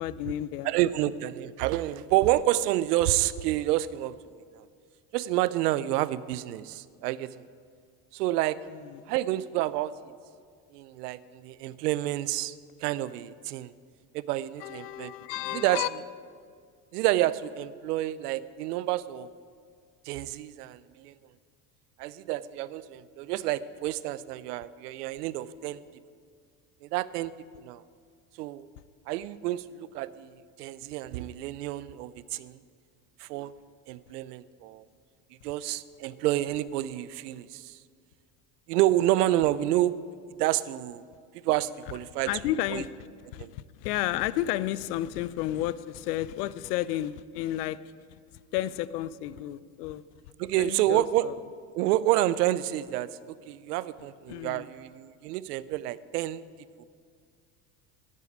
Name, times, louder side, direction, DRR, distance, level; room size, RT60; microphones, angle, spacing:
voice 1, 0.0-0.7 1.0-1.1 8.7-9.0 14.6-15.9 42.3-43.1 43.3-47.9 48.3-50.0 50.5-51.3 54.3-54.7, left 14 dB, 85° left, 18 dB, 0.6 m, -32 dB
voice 2, 0.6-4.1 4.5-4.6 5.1-7.5 8.1-8.6 9.1-9.9 10.7-12.5 12.8-13.7 14.1-15.1 15.5-15.8 16.9-19.3 20.0-21.1 22.0-25.8 26.8-27.3 27.6-27.8 28.4-28.7 29.1-32.6 33.2-33.5 33.9-34.9 35.4-37.8 38.7-39.9 40.4-41.1 41.3-42.3 42.7-42.8 43.4-43.5 50.4-51.3 51.7-56.4 56.8-56.9, right 15 dB, 90° right, 17 dB, 0.6 m, -29 dB
10.0 x 8.4 x 9.5 m, 2.1 s
supercardioid pair, 85°, 46 cm